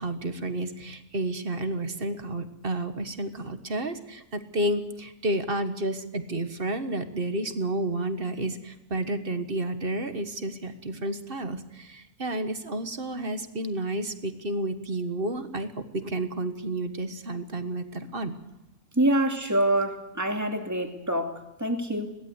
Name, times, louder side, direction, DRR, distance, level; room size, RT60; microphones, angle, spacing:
voice 1, 0.0-18.3, right 1 dB, 45° right, 9 dB, 1.7 m, -31 dB
voice 2, 19.0-22.2, right 1 dB, 10° right, 4 dB, 2.4 m, -26 dB
22.0 x 17.0 x 8.1 m, 1.0 s
omnidirectional pair, 1.4 m